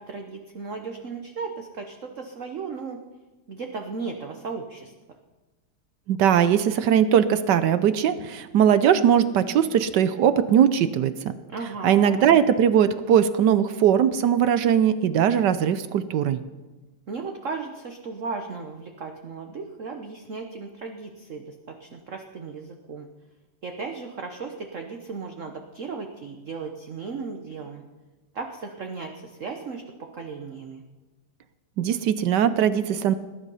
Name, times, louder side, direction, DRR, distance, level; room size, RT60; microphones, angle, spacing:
voice 1, 0.0-3.0 3.5-4.9 11.5-12.3 17.1-23.1 23.6-27.8 28.3-30.8, right 4 dB, 45° right, 3 dB, 1.1 m, -36 dB
voice 2, 6.1-11.3 11.8-16.4 31.8-33.1, right 9 dB, 70° right, 13 dB, 1.1 m, -20 dB
19.5 x 11.0 x 5.5 m, 1.2 s
omnidirectional pair, 2.4 m